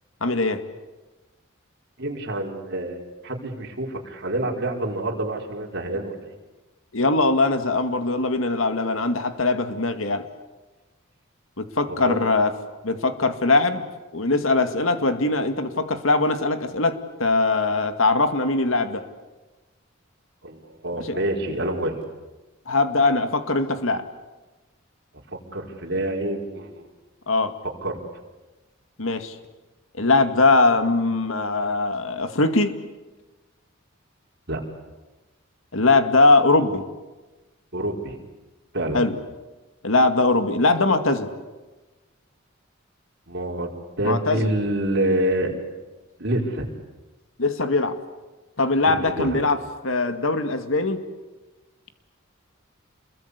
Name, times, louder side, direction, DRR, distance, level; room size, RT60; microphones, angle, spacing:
voice 1, 0.2-0.6 6.9-10.2 11.6-12.5 12.8-13.8 14.1-19.0 21.0-21.2 22.7-24.0 27.3-27.5 29.0-29.4 30.0-32.7 35.7-36.9 38.9-39.2 39.8-41.3 44.0-44.5 47.4-48.0 48.6-51.0, left 3 dB, 75° left, 9 dB, 2.2 m, -21 dB
voice 2, 2.0-6.3 11.9-12.2 20.4-21.9 25.5-26.7 27.8-28.0 34.5-34.6 37.7-38.1 38.7-39.0 43.3-43.7 44.0-45.5 46.2-46.7 48.8-49.4, right 1 dB, 55° right, 0 dB, 4.9 m, -27 dB
28.5 x 22.0 x 8.3 m, 1.2 s
head